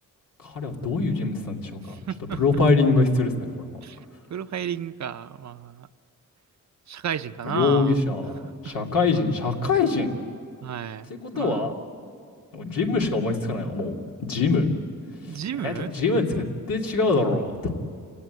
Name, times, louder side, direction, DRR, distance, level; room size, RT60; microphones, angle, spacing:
voice 1, 0.4-2.0 2.3-3.7 7.4-8.3 8.6-10.1 11.1-11.8 12.5-13.9 14.2-14.7 15.6-17.7, left 3 dB, 85° left, 0 dB, 2.7 m, -23 dB
voice 2, 2.1-2.4 3.8-4.0 4.3-5.9 6.9-8.0 8.4-8.7 10.6-11.7 15.3-15.9, right 9 dB, 55° right, 12 dB, 0.7 m, -33 dB
28.5 x 17.0 x 9.2 m, 2.3 s
cardioid pair, 95°, 33 cm